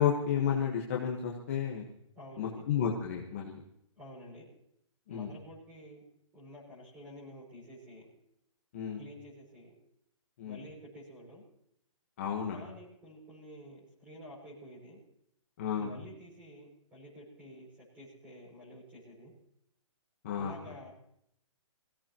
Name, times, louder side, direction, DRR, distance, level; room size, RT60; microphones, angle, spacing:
voice 1, 0.0-1.8 2.4-3.6 5.1-5.3 8.7-9.0 10.4-10.6 12.2-12.7 15.6-15.9 20.2-20.5, left 8 dB, 25° left, -2 dB, 1.4 m, -31 dB
voice 2, 2.1-2.6 3.9-4.5 5.1-6.0 6.3-8.1 9.0-9.8 10.4-11.4 12.5-15.0 15.8-19.3 20.3-21.0, equal, 10° right, -5 dB, 6.2 m, -50 dB
25.5 x 16.5 x 3.0 m, 0.74 s
hypercardioid pair, 175°, 17 cm